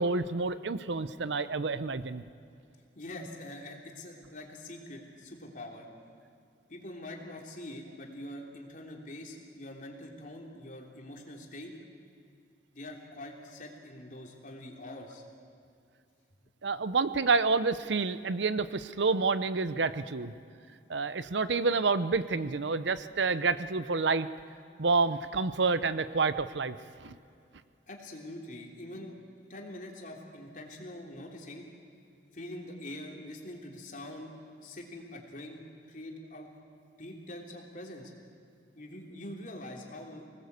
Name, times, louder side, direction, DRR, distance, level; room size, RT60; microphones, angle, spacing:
voice 1, 0.0-2.2 16.6-20.3 20.9-24.3 24.8-27.2, right 4 dB, 75° right, 14 dB, 0.7 m, -28 dB
voice 2, 2.9-5.9 6.7-11.7 12.7-15.2 27.9-29.2 29.5-31.7 32.3-34.3 34.6-35.6 35.9-36.5 37.0-38.1 38.7-40.3, left 1 dB, 45° left, 1 dB, 3.3 m, -44 dB
25.0 x 19.0 x 8.2 m, 2.5 s
head